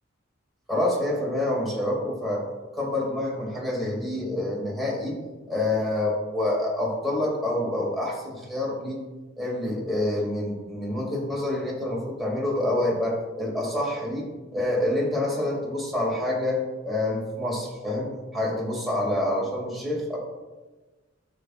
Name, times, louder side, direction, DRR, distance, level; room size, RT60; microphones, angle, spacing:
voice 1, 0.7-2.4 2.7-5.2 5.5-9.0 9.4-20.2, left 1 dB, ahead, -5 dB, 2.5 m, -27 dB
12.0 x 5.9 x 2.5 m, 1.2 s
head